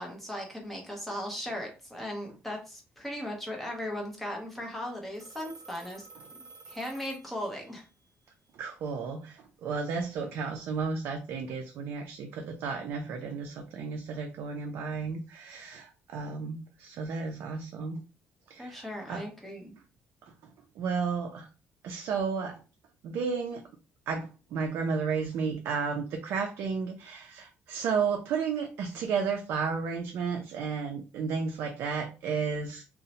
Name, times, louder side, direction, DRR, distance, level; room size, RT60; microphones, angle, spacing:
voice 1, 0.0-6.1 6.7-7.8 18.6-19.7, left 1 dB, 5° left, 0 dB, 0.7 m, -37 dB
Telephone, 5.1-7.9, right 4 dB, 35° right, 0.6 m, -51 dB
voice 2, 8.6-18.0 18.5-19.3 20.8-21.5 21.8-22.6 23.0-23.6 24.1-32.8, right 5 dB, 65° right, 3 dB, 0.3 m, -33 dB
2.7 x 2.0 x 2.7 m, 0.33 s
cardioid pair, 165°, 4 cm